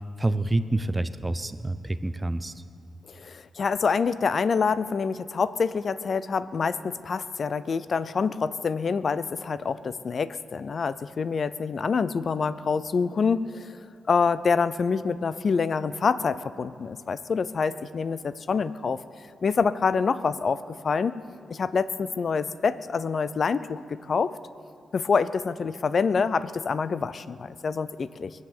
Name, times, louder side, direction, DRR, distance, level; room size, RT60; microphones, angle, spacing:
voice 1, 0.2-2.5, right 2 dB, 15° right, 12 dB, 0.6 m, -27 dB
voice 2, 3.1-13.7 14.1-19.0 19.4-20.6 20.8-21.1 21.5-23.8 24.1-24.3 24.9-28.3, left 5 dB, 50° left, 15 dB, 0.5 m, -26 dB
22.0 x 8.1 x 7.1 m, 2.6 s
cardioid pair, 100°, 0 cm